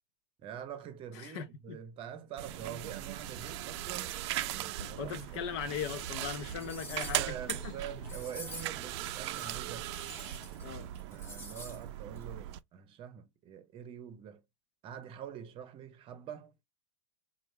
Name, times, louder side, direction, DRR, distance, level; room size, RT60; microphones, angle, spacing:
voice 1, 0.4-4.2 4.5-5.4 6.6-9.9 11.1-14.4 14.8-16.5, right 9 dB, 35° right, 0.9 m, -45 dB
voice 2, 1.1-1.8 4.8-7.7 10.3-10.9, left 8 dB, 60° left, 0.8 m, -39 dB
sound 1, 2.4-10.6, equal, 5° right, 2.4 m, -55 dB
sound 2, 2.4-12.6, right 13 dB, 60° right, 0.5 m, -39 dB
sound 3, 5.8-5.9 6.4-7.4 8.0-8.9 9.3-10.7 10.9-11.8 12.2-12.3, left 1 dB, 15° left, 1.3 m, -48 dB
4.4 x 2.5 x 3.1 m
supercardioid pair, 135°, 16 cm